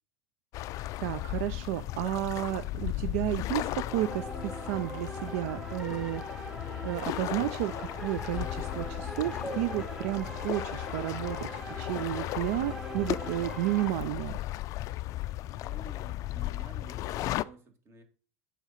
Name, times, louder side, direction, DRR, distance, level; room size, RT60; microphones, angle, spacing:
sound 1, 0.5-17.4, left 16 dB, 45° left, 0.3 m, -36 dB
voice 1, 0.7-14.4, right 15 dB, 65° right, 14 dB, 0.4 m, -32 dB
sound 2, 1.6-14.3, right 1 dB, 90° right, 1.9 m, -53 dB
sound 3, 3.9-13.9, left 1 dB, 5° right, 1.2 m, -41 dB
voice 2, 15.6-18.0, right 3 dB, 30° right, 6 dB, 1.8 m, -52 dB
8.0 x 3.8 x 5.6 m, 0.40 s
hypercardioid pair, 105°, 8 cm